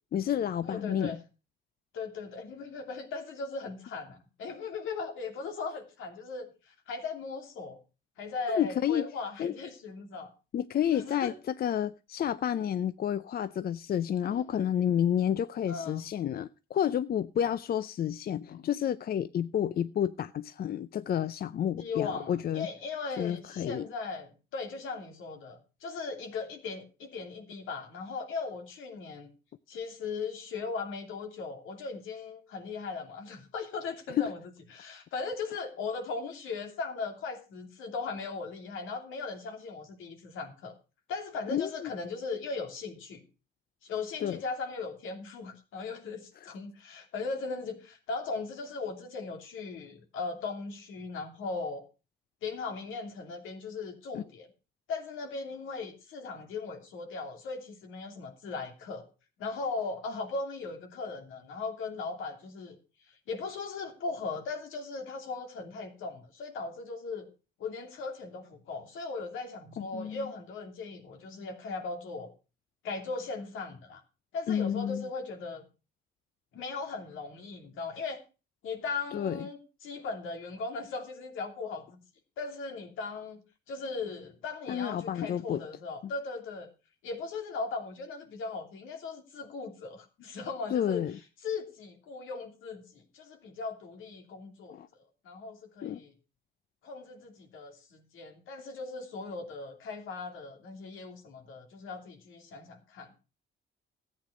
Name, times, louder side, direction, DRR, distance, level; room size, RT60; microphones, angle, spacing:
voice 1, 0.1-1.1 8.5-9.1 9.4-9.5 10.5-22.7 23.2-23.9 34.2-34.3 41.5-41.9 44.2-44.4 54.1-54.2 69.8-70.2 74.5-75.0 79.1-79.5 84.7-85.6 90.7-91.1 94.7-94.9 95.8-96.0, left 9 dB, 50° left, 0.5 m, -30 dB
voice 2, 0.6-1.2 1.9-7.8 8.2-10.3 10.9-11.3 14.2-14.7 15.6-16.1 21.8-29.3 29.7-34.4 34.7-40.8 41.1-43.2 43.8-51.8 52.4-54.5 54.9-59.1 59.4-62.8 63.1-67.3 67.6-72.3 72.8-74.0 74.3-75.6 76.5-78.2 78.6-82.0 82.4-83.4 83.7-86.7 87.0-91.0 91.4-94.8 95.2-96.1 96.8-103.1, left 4 dB, 85° left, 2.9 m, -38 dB
14.0 x 8.6 x 5.0 m
cardioid pair, 90°, 20 cm